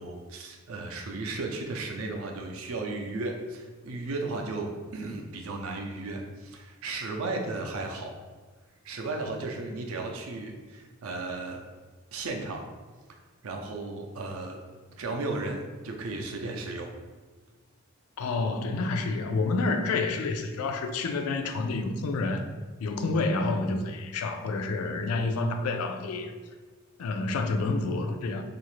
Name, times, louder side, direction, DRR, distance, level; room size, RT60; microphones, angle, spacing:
voice 1, 0.0-8.1 8.8-11.6 12.1-12.6 13.4-14.6 15.0-16.9, right 3 dB, 70° right, 2 dB, 0.5 m, -35 dB
voice 2, 18.2-22.4 22.8-26.3 27.0-28.4, left 3 dB, 85° left, 6 dB, 0.4 m, -29 dB
2.8 x 2.5 x 3.1 m, 1.4 s
head